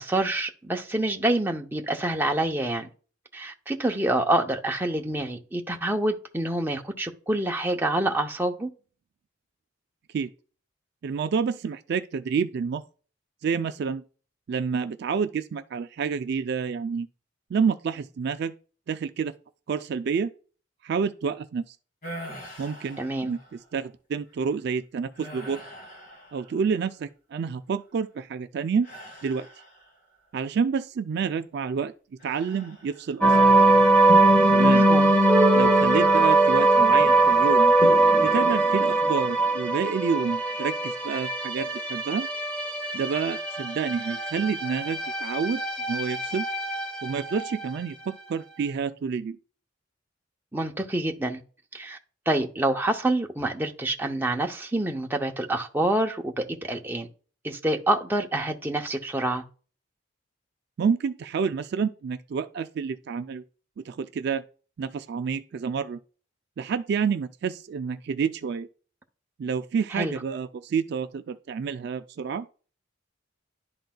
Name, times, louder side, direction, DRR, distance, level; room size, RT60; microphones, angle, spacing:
voice 1, 0.0-2.9 3.3-8.7 23.0-23.3 34.6-35.1 50.5-51.4 51.7-52.0 52.3-57.1 57.4-59.4 69.9-70.1, right 1 dB, 10° right, 0.6 m, -27 dB
voice 2, 11.0-12.8 13.4-14.0 14.5-17.1 17.5-18.5 18.9-19.3 19.7-20.3 20.8-21.8 22.6-25.6 26.3-28.9 29.2-29.5 30.3-31.9 32.2-33.5 34.5-34.9 35.5-37.7 38.2-42.3 42.9-45.6 45.9-46.5 47.0-49.4 60.8-63.4 63.8-64.4 64.8-66.0 66.6-68.7 69.4-72.5, right 6 dB, 55° right, 0.3 m, -29 dB
sound 1, 22.0-23.7 24.3-24.5 25.1-27.0 28.8-30.2 32.2-33.3 33.7-34.2, equal, 45° left, 2.6 m, -44 dB
sound 2, 33.2-47.7, right 2 dB, 5° left, 1.0 m, -21 dB
11.5 x 3.9 x 2.2 m
head